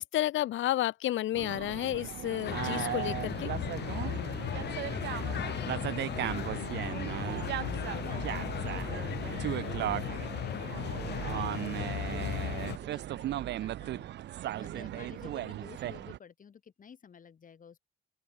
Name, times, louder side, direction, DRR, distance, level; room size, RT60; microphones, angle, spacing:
voice 1, 0.0-3.5, left 14 dB, 75° left, 1.0 m, -31 dB
sound 1, 1.3-16.2, right 13 dB, 60° right, 0.5 m, -36 dB
sound 2, 1.3-7.0, right 15 dB, 85° right, 2.0 m, -54 dB
sound 3, 2.4-12.8, left 11 dB, 60° left, 0.7 m, -36 dB
voice 2, 4.5-14.1 14.6-17.8, left 7 dB, 40° left, 1.5 m, -52 dB
open air
cardioid pair, 90°, 20 cm